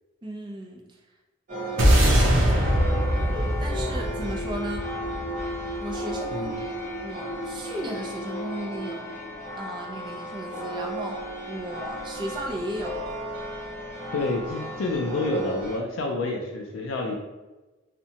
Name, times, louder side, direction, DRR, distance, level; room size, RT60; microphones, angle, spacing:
voice 1, 0.2-0.8 3.6-4.9 5.8-6.8 7.0-9.1 9.5-11.2 11.5-13.0, right 1 dB, 25° right, 1 dB, 0.4 m, -35 dB
sound 1, 1.5-15.8, right 1 dB, 40° right, 0.8 m, -35 dB
sound 2, 1.8-6.2, equal, 80° right, 0.6 m, -22 dB
sound 3, 2.4-9.8, left 1 dB, 5° right, 0.9 m, -37 dB
voice 2, 14.1-17.1, left 2 dB, 85° left, 1 dB, 0.4 m, -28 dB
2.7 x 2.1 x 2.7 m, 1.1 s
head